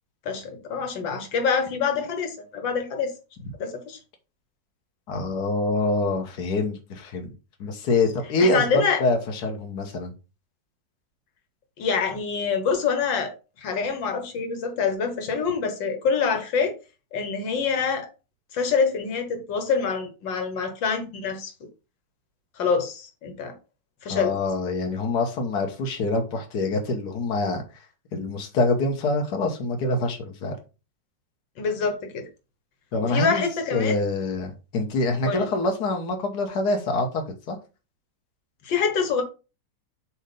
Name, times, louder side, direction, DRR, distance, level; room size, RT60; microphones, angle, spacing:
voice 1, 0.3-3.1 3.6-4.0 8.4-9.0 11.8-13.3 13.6-16.7 17.1-18.1 18.5-21.5 22.6-23.6 24.0-24.4 31.6-32.3 33.0-34.0 35.2-35.5 38.6-39.2, left 5 dB, 90° left, 2.0 m, -26 dB
voice 2, 5.1-7.3 7.6-10.1 24.1-27.6 28.1-30.5 32.9-33.4 33.7-37.6, left 2 dB, 65° left, 1.7 m, -25 dB
7.9 x 3.0 x 5.2 m
omnidirectional pair, 2.0 m